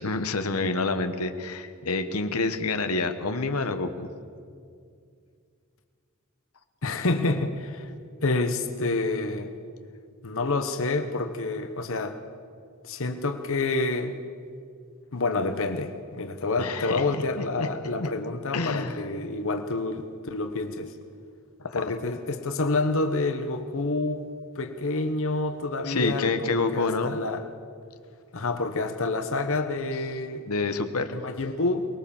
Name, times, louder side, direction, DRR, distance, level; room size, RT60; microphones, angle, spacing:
voice 1, 0.0-4.1 16.6-17.7 18.0-18.1 18.5-19.0 21.6-21.8 25.8-27.2 30.5-31.1, left 3 dB, 85° left, 8 dB, 1.2 m, -28 dB
voice 2, 6.8-7.9 8.2-9.5 10.2-12.2 12.8-14.1 15.1-20.9 21.7-24.3 24.5-27.4 28.3-30.5 31.1-31.9, left 3 dB, 65° left, 7 dB, 1.2 m, -28 dB
23.5 x 20.5 x 7.2 m, 2.3 s
head